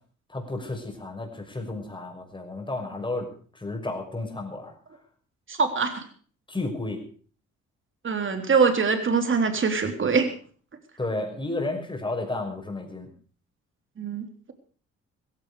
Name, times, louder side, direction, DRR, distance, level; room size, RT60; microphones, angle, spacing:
voice 1, 0.3-3.3 3.5-4.7 6.5-7.0 11.0-13.1, left 2 dB, 15° left, 3 dB, 5.9 m, -32 dB
voice 2, 5.5-6.1 8.0-10.3 14.0-14.5, right 5 dB, 40° right, 6 dB, 3.6 m, -23 dB
16.5 x 15.5 x 4.9 m, 0.44 s
cardioid pair, 90°, 30 cm